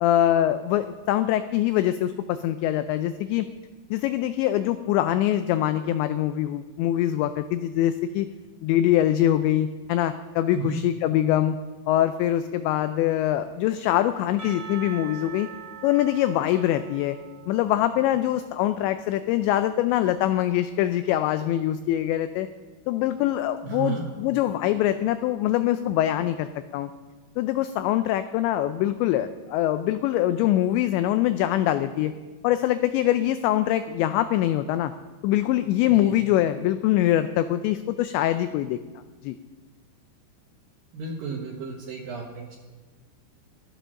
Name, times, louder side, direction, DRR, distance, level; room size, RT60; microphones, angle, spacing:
voice 1, 0.0-3.5 3.9-8.3 8.6-11.6 11.9-15.5 15.8-17.2 17.5-22.5 22.9-26.9 27.4-32.1 32.4-34.9 35.2-38.8 39.2-39.4, left 12 dB, 90° left, 11 dB, 2.5 m, -23 dB
Percussion / Church bell, 14.4-18.9, right 7 dB, 20° right, 1.7 m, -43 dB
voice 2, 23.6-24.1 35.9-36.1 40.9-42.6, right 5 dB, 65° right, 0 dB, 2.3 m, -33 dB
14.5 x 13.5 x 6.4 m, 1.3 s
omnidirectional pair, 5.8 m